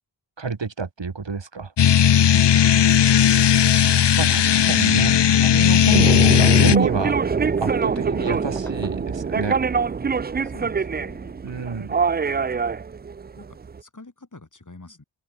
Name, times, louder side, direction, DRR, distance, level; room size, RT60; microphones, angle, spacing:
voice 1, 0.4-1.7 4.2-9.6 11.4-12.0, right 4 dB, 70° right, 3.7 m, -28 dB
sound 1, 1.8-6.8, left 9 dB, 65° left, 0.7 m, -16 dB
voice 2, 2.4-4.5 10.4-11.7 12.2-12.8 13.4-15.0, left 3 dB, 40° left, 5.0 m, -46 dB
Hammer / Wood, 5.8-6.1 6.4-9.3 9.7-10.8, equal, 5° left, 5.6 m, -47 dB
sound 2, 5.9-13.8, right 5 dB, 25° right, 0.3 m, -24 dB
wide cardioid pair, 60°, 45 cm